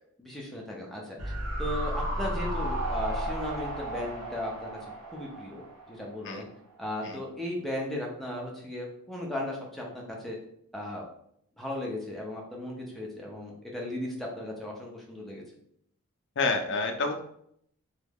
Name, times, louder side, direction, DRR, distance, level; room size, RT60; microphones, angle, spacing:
voice 1, 0.2-1.3 1.6-4.7 5.0-6.4 6.8-10.4 10.7-11.1 11.6-15.4, left 1 dB, ahead, -2 dB, 0.7 m, -36 dB
sound 1, 1.2-6.4 6.7-6.8, right 1 dB, 65° right, 1.2 m, -33 dB
voice 2, 16.4-17.2, left 3 dB, 60° left, 5 dB, 0.5 m, -28 dB
3.1 x 2.3 x 3.5 m, 0.70 s
head